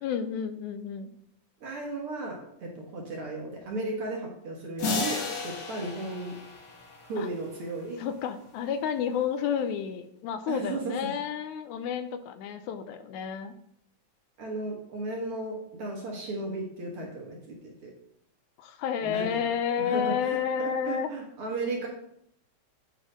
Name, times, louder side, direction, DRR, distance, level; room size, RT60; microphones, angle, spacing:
voice 1, 0.0-1.1 7.2-7.3 8.0-13.5 18.6-21.1, left 8 dB, 80° left, 10 dB, 2.0 m, -30 dB
voice 2, 1.6-6.3 7.1-8.0 10.5-11.1 14.4-17.9 19.0-19.3 19.8-21.9, right 2 dB, 55° right, -1 dB, 1.8 m, -35 dB
sound 1, 4.8-7.6, left 3 dB, 60° left, 2.3 m, -34 dB
8.1 x 4.2 x 4.9 m, 0.73 s
omnidirectional pair, 3.4 m